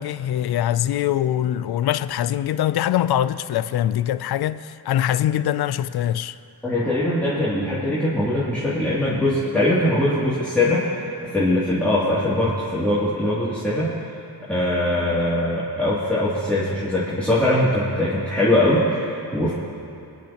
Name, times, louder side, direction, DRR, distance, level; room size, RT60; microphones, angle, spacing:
voice 1, 0.0-6.4, left 11 dB, 70° left, 0.5 m, -23 dB
voice 2, 6.6-10.8 11.3-13.9 14.5-19.5, left 1 dB, 5° left, 2.6 m, -21 dB
25.0 x 10.0 x 3.0 m
cardioid pair, 75°, 40 cm